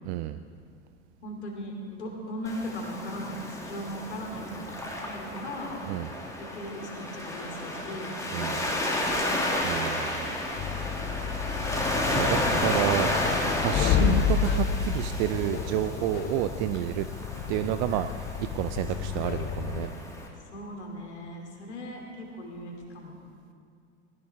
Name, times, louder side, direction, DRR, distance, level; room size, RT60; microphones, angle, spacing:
voice 1, 0.0-0.4 5.9-6.1 8.3-8.6 9.6-10.3 12.1-13.1 13.5-17.1 17.5-19.9, right 14 dB, 40° right, 11 dB, 0.5 m, -30 dB
voice 2, 1.2-4.7 5.0-5.8 6.4-9.4 19.0-20.1 20.4-23.2, equal, 75° left, 0 dB, 2.8 m, -39 dB
Waves surf, 2.4-20.3, left 1 dB, 10° left, 2.4 m, -32 dB
sound 1, 10.6-19.9, left 7 dB, 30° left, 0.9 m, -30 dB
19.5 x 17.0 x 3.5 m, 2.3 s
figure-of-eight pair, 80°, 34 cm